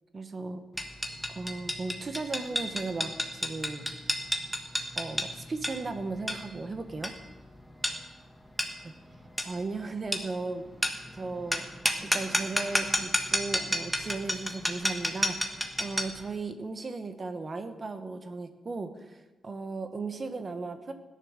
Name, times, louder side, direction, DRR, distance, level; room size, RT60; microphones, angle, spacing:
voice 1, 0.1-0.6 1.3-3.9 4.9-7.1 8.8-8.9 9.4-10.6 11.1-11.6 12.0-15.5 15.8-19.2 19.4-20.9, right 3 dB, 30° right, 8 dB, 1.3 m, -36 dB
sound 1, 0.8-16.2, equal, ahead, 1.4 m, -32 dB
17.0 x 10.5 x 6.6 m, 1.1 s
wide cardioid pair, 170°, 0 cm